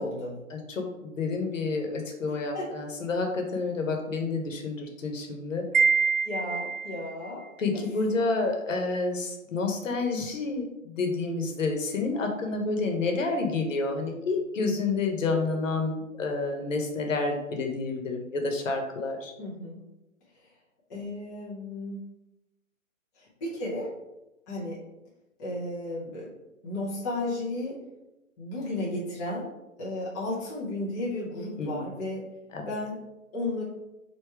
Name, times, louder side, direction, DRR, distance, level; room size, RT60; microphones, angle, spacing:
voice 1, 0.0-0.4 2.3-2.7 6.2-7.4 7.7-7.8 19.4-19.8 20.9-22.0 23.2-23.9 24.5-24.8 25.4-26.3 26.6-27.8 28.4-29.5 29.8-32.2 32.6-33.0 33.3-33.6, left 1 dB, 15° left, -7 dB, 0.6 m, -33 dB
voice 2, 0.5-5.6 7.6-19.3 31.6-31.8 32.5-32.7, left 3 dB, 65° left, 3 dB, 1.1 m, -29 dB
Wind chime, 5.7-7.1, right 5 dB, 85° right, 0.6 m, -25 dB
3.3 x 3.0 x 4.5 m, 0.96 s
hypercardioid pair, 145°, 41 cm